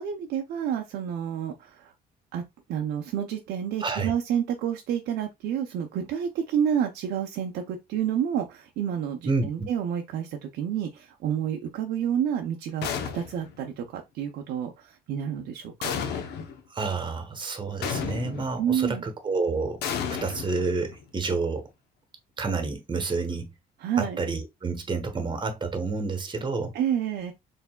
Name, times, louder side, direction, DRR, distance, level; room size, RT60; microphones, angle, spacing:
voice 1, 0.0-1.9 2.3-2.4 2.7-12.9 13.1-15.9 18.6-19.0 23.8-24.2 26.7-27.3, right 9 dB, 75° right, 0.6 m, -29 dB
voice 2, 3.8-4.1 9.3-9.7 16.7-21.6 22.4-23.5 24.0-26.7, right 4 dB, 25° right, 1.1 m, -29 dB
sound 1, 12.8-13.6 15.8-16.6 17.8-18.6 19.8-21.0, left 7 dB, 80° left, 0.7 m, -32 dB
4.4 x 3.3 x 2.2 m
cardioid pair, 110°, 17 cm